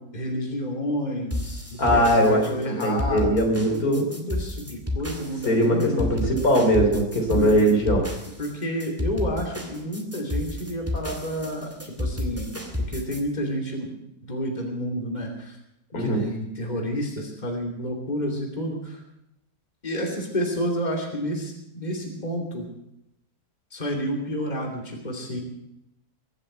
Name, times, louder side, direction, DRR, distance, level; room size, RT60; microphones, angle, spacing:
voice 1, 0.1-1.6 1.9-6.3 7.3-7.5 8.4-12.5 12.8-13.9 14.2-15.6 16.0-19.0 19.8-22.7 23.7-25.4, equal, 25° left, 1 dB, 3.0 m, -30 dB
sound 1, 1.3-13.2, left 1 dB, 10° right, 2.3 m, -31 dB
voice 2, 1.8-4.3 5.5-8.0 15.9-16.2, equal, 60° left, 2 dB, 4.0 m, -21 dB
23.0 x 7.6 x 8.0 m, 0.84 s
omnidirectional pair, 1.8 m